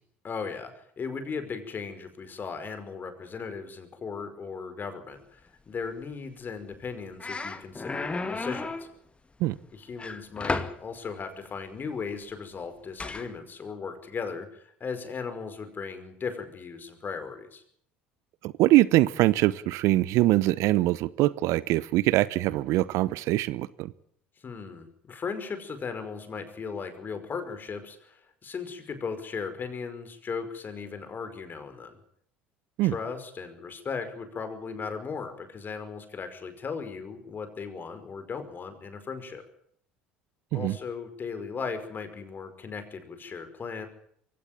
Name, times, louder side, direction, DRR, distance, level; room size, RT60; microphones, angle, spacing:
voice 1, 0.2-8.9 9.7-17.6 24.4-31.9 32.8-39.4 40.5-43.9, left 5 dB, 35° left, 9 dB, 5.3 m, -37 dB
sound 1, 6.7-6.9 7.2-8.9 10.0-10.8 13.0-13.3, left 3 dB, 20° left, 2.4 m, -33 dB
voice 2, 18.4-23.9 32.8-32.9 40.5-40.8, right 17 dB, 60° right, 19 dB, 0.9 m, -23 dB
23.0 x 17.0 x 9.0 m, 0.66 s
hypercardioid pair, 65°, 6 cm